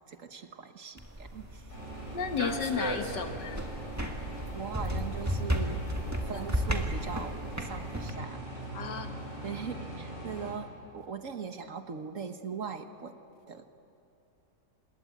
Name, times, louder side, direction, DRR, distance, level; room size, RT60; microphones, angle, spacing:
voice 1, 0.1-1.8 4.5-5.8 6.2-8.6 9.4-13.2 13.5-13.7, right 6 dB, 50° right, 7 dB, 1.5 m, -40 dB
sound 1, 1.0-8.1, equal, 10° right, 1.9 m, -34 dB
sound 2, 1.7-10.5, right 2 dB, 65° left, 8.6 m, -42 dB
voice 2, 2.1-3.6 8.7-9.1, left 6 dB, 80° left, 6 dB, 2.2 m, -33 dB
26.5 x 21.0 x 9.4 m, 2.9 s
omnidirectional pair, 1.9 m